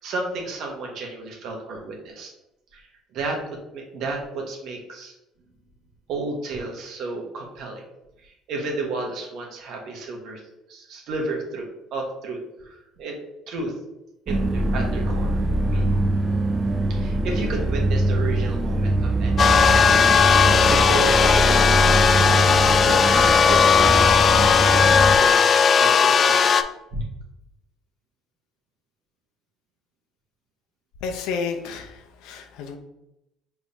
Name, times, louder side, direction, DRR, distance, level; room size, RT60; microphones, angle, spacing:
voice 1, 0.0-2.3 2.7-2.9 3.1-5.1 6.1-7.8 8.2-10.4 10.7-13.2 13.5-13.7 14.3-15.4 15.7-15.9 16.9-19.8 20.6-22.1 22.8-25.5 25.8-26.5 26.9-27.0, right 3 dB, 65° right, 1 dB, 1.2 m, -32 dB
sound 1, 14.3-25.2, right 1 dB, 25° right, 0.4 m, -23 dB
sound 2, 19.4-26.6, left 6 dB, 40° left, 0.3 m, -17 dB
voice 2, 31.0-32.8, left 5 dB, 75° left, 4 dB, 0.7 m, -31 dB
5.1 x 3.5 x 2.7 m, 0.88 s
supercardioid pair, 85°, 0 cm